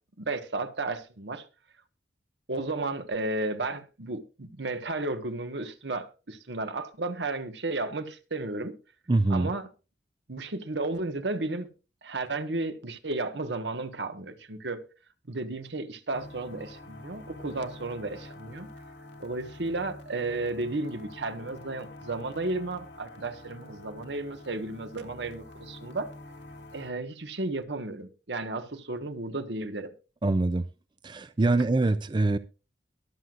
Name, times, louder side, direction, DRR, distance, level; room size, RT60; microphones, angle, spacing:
voice 1, 0.2-1.4 2.5-8.7 9.3-9.7 10.3-11.7 12.0-14.8 15.3-18.7 19.2-26.1 26.7-29.9, right 2 dB, 75° right, 1.4 m, -33 dB
voice 2, 9.1-9.5 30.2-30.6 31.0-32.4, right 2 dB, 25° right, 0.4 m, -24 dB
sound 1, 16.1-26.9, left 1 dB, 75° left, 2.0 m, -47 dB
22.5 x 7.8 x 2.5 m
head